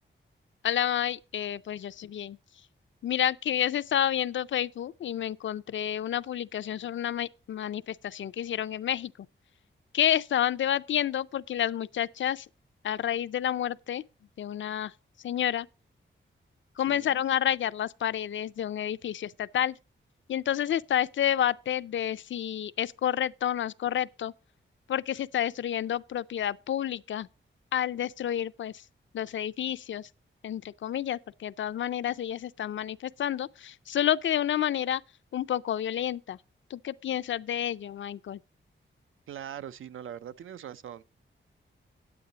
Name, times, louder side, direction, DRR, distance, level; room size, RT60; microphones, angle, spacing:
voice 1, 0.6-2.4 3.0-9.1 9.9-12.5 12.8-14.0 14.4-14.9 15.2-15.7 16.8-19.8 20.3-24.3 24.9-27.3 27.7-28.7 29.1-30.1 30.4-35.0 35.3-36.4 36.7-38.4, left 10 dB, 70° left, 0.4 m, -29 dB
voice 2, 16.9-17.2 39.3-41.0, right 9 dB, 85° right, 0.5 m, -41 dB
9.3 x 8.8 x 3.9 m
wide cardioid pair, 165°, 21 cm